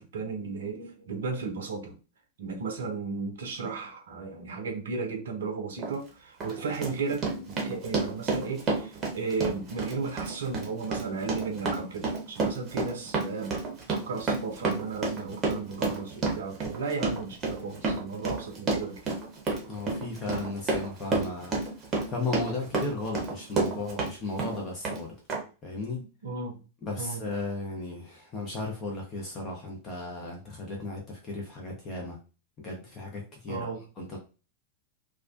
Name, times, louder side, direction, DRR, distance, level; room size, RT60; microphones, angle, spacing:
voice 1, 0.0-2.0 2.4-13.5 13.9-19.2 25.9-26.6 27.0-27.3 33.5-33.8, right 4 dB, 65° right, 0.5 m, -35 dB
Run, 5.8-5.9 6.4-24.1 24.4-25.0 25.3-25.4, right 3 dB, 25° right, 0.8 m, -30 dB
voice 2, 19.7-25.1 25.6-26.0 26.8-32.2 32.6-33.7 34.0-34.2, left 3 dB, 25° left, 0.7 m, -35 dB
2.3 x 2.2 x 2.5 m
figure-of-eight pair, 90°, 0 cm